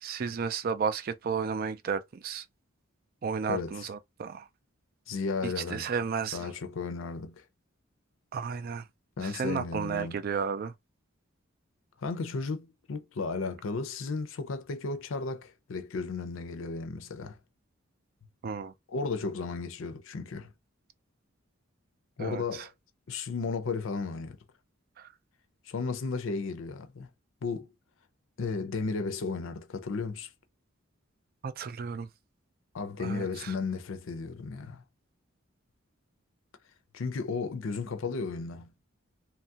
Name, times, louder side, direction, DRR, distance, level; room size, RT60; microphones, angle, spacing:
voice 1, 0.0-2.4 3.2-4.5 5.4-6.5 8.3-8.8 9.2-10.7 18.4-18.7 22.2-22.7 25.0-25.1 31.4-32.1 33.0-33.5, right 6 dB, 45° right, 0.3 m, -33 dB
voice 2, 3.5-3.9 5.1-5.9 6.3-7.4 9.2-10.2 12.0-17.4 18.9-20.5 22.2-22.7 23.1-24.4 25.7-27.1 27.4-27.7 28.4-30.3 32.7-34.8 36.9-38.7, left 4 dB, 70° left, 0.5 m, -34 dB
2.9 x 2.3 x 2.7 m
head